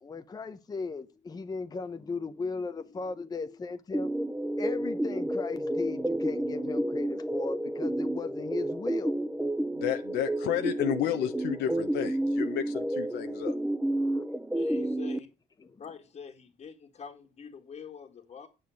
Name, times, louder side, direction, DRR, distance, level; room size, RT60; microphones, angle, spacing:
voice 1, 0.0-4.1 4.6-9.1 14.0-14.2 15.6-15.8, left 4 dB, 25° left, 0.9 m, -37 dB
sound 1, 3.9-15.2, right 1 dB, 5° right, 0.5 m, -30 dB
voice 2, 9.7-13.5, left 10 dB, 85° left, 1.2 m, -31 dB
voice 3, 14.5-15.3 15.8-18.5, left 6 dB, 40° left, 1.8 m, -45 dB
9.4 x 7.6 x 6.4 m
cardioid pair, 110°, 17 cm